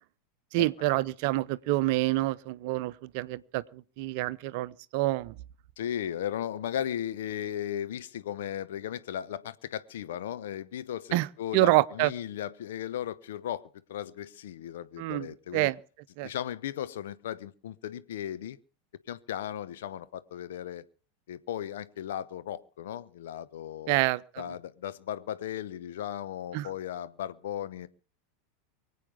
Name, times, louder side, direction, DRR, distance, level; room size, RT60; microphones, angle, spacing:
voice 1, 0.5-5.3 11.1-11.3 11.5-12.1 15.0-15.3 15.5-15.8 16.2-16.3 23.9-24.4 26.5-26.7, right 18 dB, 50° right, 0.7 m, -27 dB
voice 2, 5.8-13.6 13.9-15.7 16.2-18.6 19.1-20.8 21.3-24.0 24.4-27.9, left 10 dB, 65° left, 0.9 m, -36 dB
24.0 x 8.5 x 5.1 m
figure-of-eight pair, 85°, 0 cm